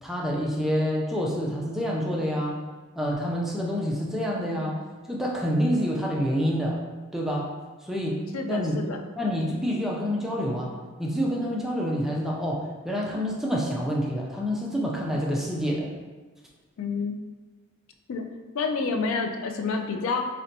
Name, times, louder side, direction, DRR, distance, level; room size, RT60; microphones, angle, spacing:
voice 1, 0.0-2.6 3.0-4.8 5.1-6.8 7.1-7.5 7.8-8.2 8.5-8.8 9.2-10.7 11.0-15.9, equal, ahead, -3 dB, 0.4 m, -27 dB
voice 2, 8.3-9.0 16.8-17.2 18.1-18.3 18.5-20.3, left 4 dB, 70° left, 4 dB, 0.3 m, -28 dB
3.9 x 2.1 x 2.7 m, 1.3 s
head